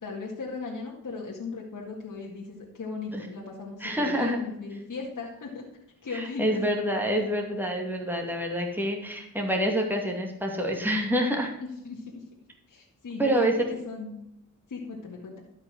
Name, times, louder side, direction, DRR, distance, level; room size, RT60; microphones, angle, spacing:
voice 1, 0.0-5.7 6.0-6.6 11.6-12.2 12.7-14.2 14.7-15.4, left 4 dB, 60° left, -2 dB, 1.9 m, -37 dB
voice 2, 3.8-4.4 6.1-11.6 13.2-13.8, equal, 5° right, 0 dB, 2.4 m, -27 dB
12.5 x 5.7 x 6.1 m, 0.85 s
cardioid pair, 60°, 35 cm